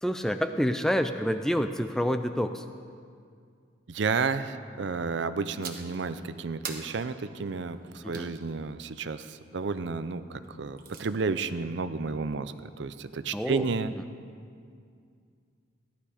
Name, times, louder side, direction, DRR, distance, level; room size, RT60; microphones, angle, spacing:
voice 1, 0.0-2.6 8.0-8.3 13.3-13.7 14.0-14.1, equal, 5° left, 8 dB, 0.4 m, -28 dB
voice 2, 3.9-13.9, right 4 dB, 65° right, 12 dB, 0.5 m, -31 dB
sound 1, 5.6-6.0 6.6-8.3 10.4-11.1, right 6 dB, 50° right, 1.1 m, -42 dB
15.5 x 11.0 x 5.0 m, 2.3 s
head